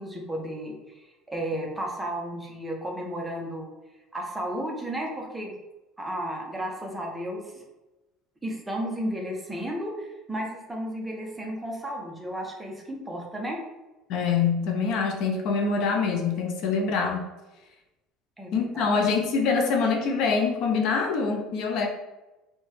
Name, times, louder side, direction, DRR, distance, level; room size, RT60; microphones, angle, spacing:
voice 1, 0.0-3.7 4.1-5.5 6.0-7.6 8.4-13.6 18.4-18.9, right 1 dB, 10° right, 0 dB, 0.5 m, -33 dB
voice 2, 14.1-17.3 18.5-21.9, left 5 dB, 55° left, 3 dB, 0.4 m, -25 dB
2.9 x 2.1 x 3.1 m, 1.0 s
cardioid pair, 150°, 0 cm